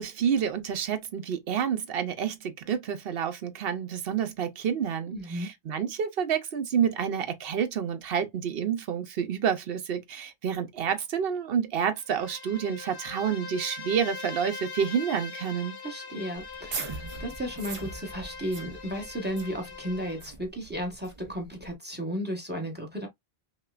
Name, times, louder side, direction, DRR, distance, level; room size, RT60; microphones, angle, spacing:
voice 1, 0.0-15.8, right 7 dB, 65° right, 0.8 m, -29 dB
voice 2, 5.1-5.5 15.8-23.1, equal, 10° right, 1.0 m, -34 dB
Bowed string instrument, 12.0-20.3, left 4 dB, 75° left, 0.9 m, -42 dB
sound 1, 16.4-21.7, right 4 dB, 40° right, 0.6 m, -41 dB
5.3 x 2.2 x 2.3 m
omnidirectional pair, 1.1 m